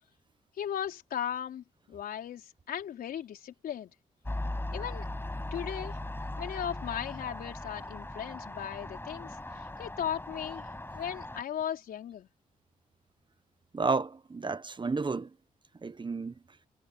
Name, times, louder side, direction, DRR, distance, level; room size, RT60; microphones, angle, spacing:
voice 1, 0.6-3.9 4.7-5.1 5.5-6.0 6.4-10.7 10.9-12.3, left 9 dB, 75° left, 4.7 m, -37 dB
sound 1, 4.3-11.4, left 1 dB, 15° left, 6.2 m, -39 dB
voice 2, 13.7-15.3 15.8-16.3, right 4 dB, 30° right, 1.3 m, -31 dB
cardioid pair, 65°, 15 cm